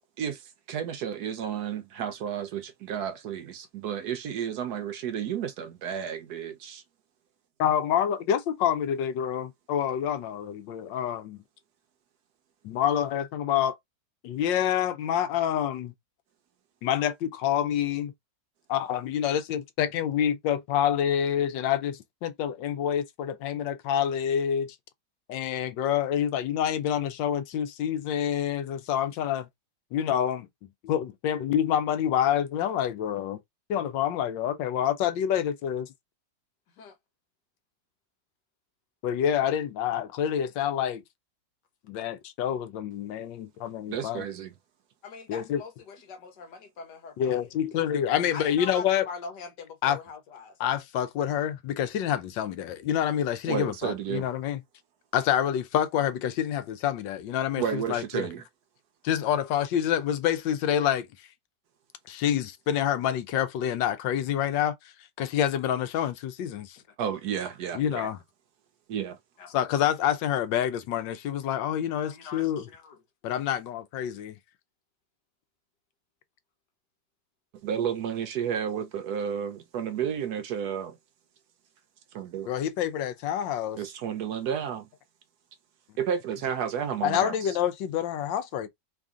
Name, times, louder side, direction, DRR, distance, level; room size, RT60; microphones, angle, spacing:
voice 1, 0.2-6.8 43.9-44.5 53.5-54.2 57.6-58.4 67.0-68.1 68.9-69.2 77.6-81.0 82.1-82.5 83.8-84.9 86.0-87.6, right 8 dB, 70° right, 1.0 m, -32 dB
voice 2, 7.6-11.4 12.6-13.8 14.2-15.9 16.8-18.1 18.7-24.8 25.3-29.5 29.9-30.5 30.8-33.4 33.7-35.9 39.0-41.0 41.9-44.2 45.3-45.6 47.2-49.1 49.8-50.0 50.6-54.6 55.1-58.3 59.0-61.1 62.1-64.7 65.2-66.8 67.7-68.2 69.5-72.7 73.2-74.4 82.5-83.8 87.0-88.7, left 10 dB, 90° left, 1.4 m, -27 dB
voice 3, 45.0-47.8 48.3-50.6 66.9-67.0 69.4-69.5 72.0-73.0, left 5 dB, 70° left, 1.5 m, -42 dB
3.3 x 2.6 x 3.6 m
omnidirectional pair, 2.0 m